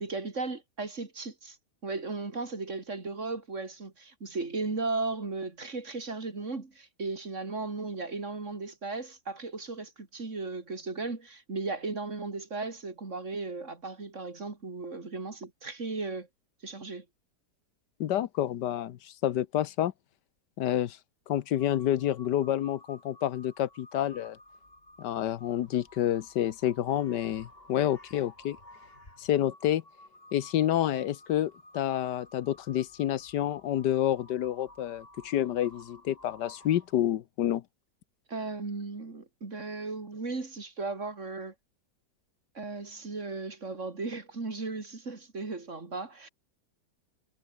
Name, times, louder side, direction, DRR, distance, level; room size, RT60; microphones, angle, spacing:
voice 1, 0.0-1.6 1.8-16.3 16.6-17.0 38.3-41.5 42.5-46.3, right 3 dB, 45° right, 3.1 m, -36 dB
voice 2, 18.0-19.9 20.6-21.0 21.3-24.4 25.0-28.6 29.2-29.8 30.3-37.6, left 12 dB, 80° left, 1.5 m, -29 dB
Crow, 21.6-37.1, left 1 dB, 30° left, 8.0 m, -54 dB
omnidirectional pair, 1.8 m